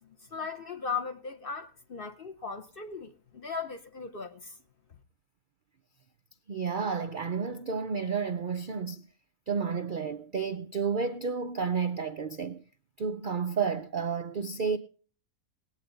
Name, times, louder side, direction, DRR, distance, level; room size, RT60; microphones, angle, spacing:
voice 1, 0.0-4.6, left 5 dB, 45° left, 0.8 m, -38 dB
voice 2, 6.5-9.1 9.5-12.6 13.0-14.8, right 5 dB, 70° right, 0.4 m, -31 dB
19.5 x 8.8 x 3.9 m
omnidirectional pair, 1.7 m